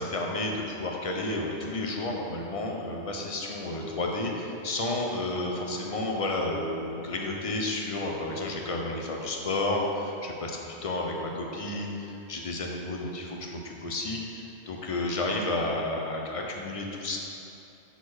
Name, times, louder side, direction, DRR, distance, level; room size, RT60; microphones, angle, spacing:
voice 1, 0.0-17.2, left 2 dB, 40° left, 0 dB, 0.6 m, -31 dB
6.2 x 4.1 x 4.7 m, 2.8 s
omnidirectional pair, 1.1 m